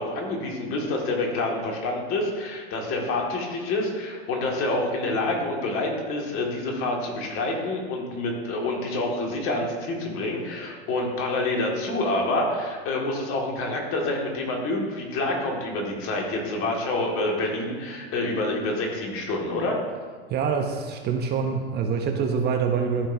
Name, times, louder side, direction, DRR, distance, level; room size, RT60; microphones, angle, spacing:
voice 1, 0.0-19.8, left 2 dB, 45° left, 0 dB, 2.1 m, -27 dB
voice 2, 20.3-23.1, right 6 dB, 30° right, 4 dB, 0.8 m, -25 dB
14.0 x 5.5 x 2.7 m, 1.5 s
hypercardioid pair, 100°, 32 cm